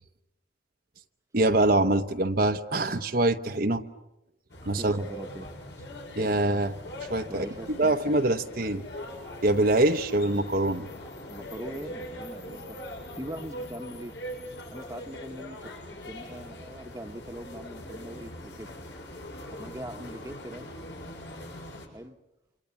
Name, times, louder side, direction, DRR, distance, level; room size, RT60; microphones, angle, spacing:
voice 1, 1.3-3.8 4.6-5.0 6.2-6.7 7.1-7.4 7.8-8.8 9.4-10.9, right 2 dB, 50° right, 6 dB, 0.9 m, -24 dB
sound 1, 4.5-21.9, left 1 dB, 75° left, 7.1 m, -42 dB
voice 2, 4.7-5.5 5.8-5.9 7.3-8.0 11.3-12.8 13.1-14.1 14.7-15.7 16.0-18.7 19.5-20.7 21.9-22.2, right 1 dB, 15° right, 6 dB, 1.1 m, -41 dB
28.0 x 27.5 x 7.0 m, 0.94 s
head